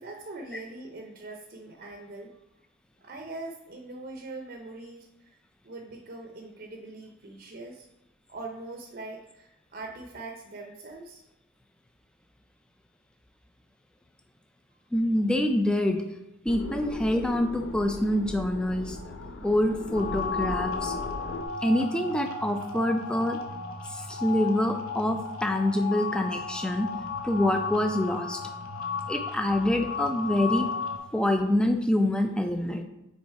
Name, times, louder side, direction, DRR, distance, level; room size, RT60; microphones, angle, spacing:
voice 1, 0.0-2.4 3.0-5.4 5.6-7.9 8.3-11.2, right 2 dB, 45° right, 1 dB, 0.6 m, -42 dB
voice 2, 14.9-16.0 16.4-19.0 19.4-20.9 21.6-23.4 23.9-26.9 27.2-28.4 29.1-30.7 31.1-32.8, left 1 dB, 5° left, 5 dB, 0.3 m, -26 dB
sound 1, 16.5-21.4, left 2 dB, 60° left, 0.5 m, -37 dB
sound 2, 19.9-31.0, left 5 dB, 85° left, 1.0 m, -34 dB
5.5 x 4.0 x 4.6 m, 0.91 s
head